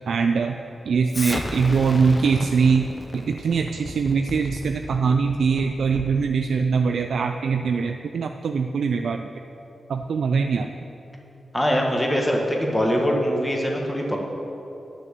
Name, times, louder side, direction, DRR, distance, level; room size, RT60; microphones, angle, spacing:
voice 1, 0.1-0.6 0.9-9.3 9.9-10.7, right 5 dB, 80° right, 6 dB, 0.4 m, -22 dB
Explosion, 1.1-6.2, left 1 dB, 25° left, 1.0 m, -34 dB
voice 2, 11.5-14.2, equal, 10° left, -1 dB, 1.6 m, -23 dB
9.1 x 6.9 x 8.2 m, 3.0 s
cardioid pair, 80°, 0 cm